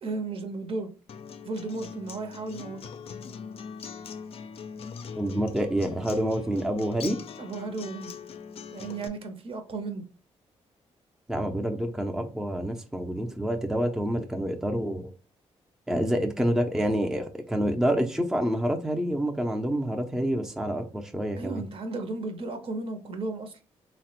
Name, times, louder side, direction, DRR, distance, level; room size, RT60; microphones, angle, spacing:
voice 1, 0.0-0.9 1.4-2.8 7.4-8.1 8.7-10.0 21.4-23.6, right 3 dB, 55° right, 0.7 m, -34 dB
Acoustic guitar, 1.1-9.1, left 6 dB, 55° left, 0.4 m, -41 dB
voice 2, 5.2-7.2 11.3-15.1 15.9-21.6, equal, 5° right, 0.4 m, -27 dB
3.1 x 2.1 x 2.9 m
cardioid pair, 70°, 12 cm